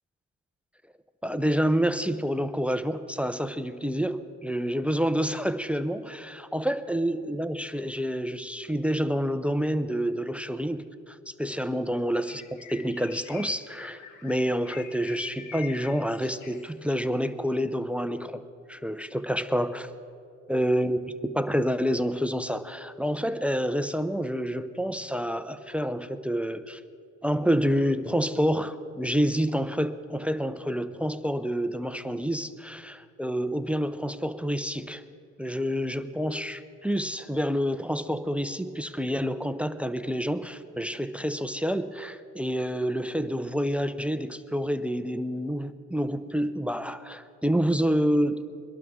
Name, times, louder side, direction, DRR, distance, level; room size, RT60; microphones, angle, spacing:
voice 1, 1.2-12.4 12.7-18.4 18.7-19.9 20.5-26.8 27.2-35.0 35.4-48.4, equal, 5° right, 12 dB, 0.5 m, -28 dB
Bird, 12.2-17.1, left 7 dB, 80° left, 1.2 m, -45 dB
22.5 x 12.0 x 3.6 m, 2.4 s
cardioid pair, 90°, 30 cm